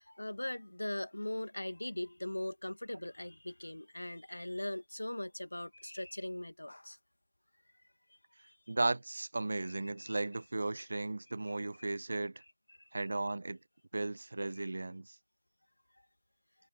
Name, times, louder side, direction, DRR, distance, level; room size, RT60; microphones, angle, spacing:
voice 1, 0.0-7.0 8.4-8.5 10.0-10.2 11.5-11.9 12.7-12.8 14.6-14.7, left 1 dB, 65° left, 1.9 m, -40 dB
voice 2, 8.7-12.4 12.9-13.6 13.9-15.2, right 2 dB, 40° right, 0.5 m, -35 dB
figure-of-eight pair, 170°, 0 cm